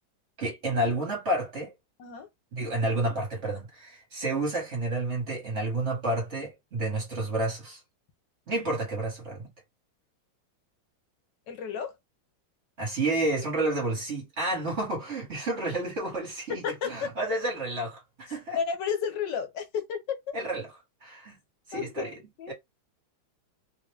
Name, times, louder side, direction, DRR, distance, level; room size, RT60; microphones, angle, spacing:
voice 1, 0.4-1.7 2.5-7.8 8.5-9.5 12.8-18.6 20.3-20.7 21.0-21.4 21.7-22.2 22.5-22.6, right 2 dB, 35° right, 1.6 m, -30 dB
voice 2, 11.5-11.9 16.5-16.9 18.6-20.0 21.7-22.5, left 7 dB, 70° left, 1.3 m, -32 dB
3.3 x 2.6 x 3.3 m
omnidirectional pair, 2.2 m